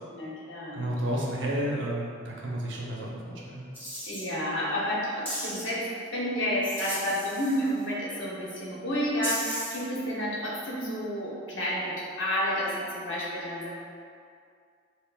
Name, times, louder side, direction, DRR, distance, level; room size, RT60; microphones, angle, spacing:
voice 1, 0.1-0.8 4.1-5.9 6.1-13.7, equal, 75° left, -6 dB, 1.0 m, -30 dB
voice 2, 0.7-3.7, right 1 dB, 70° right, -3 dB, 0.6 m, -31 dB
sound 1, 3.7-4.2 5.3-5.6 6.6-7.8 9.2-9.8, equal, 10° left, 0.8 m, -35 dB
5.7 x 2.1 x 2.3 m, 2.2 s
head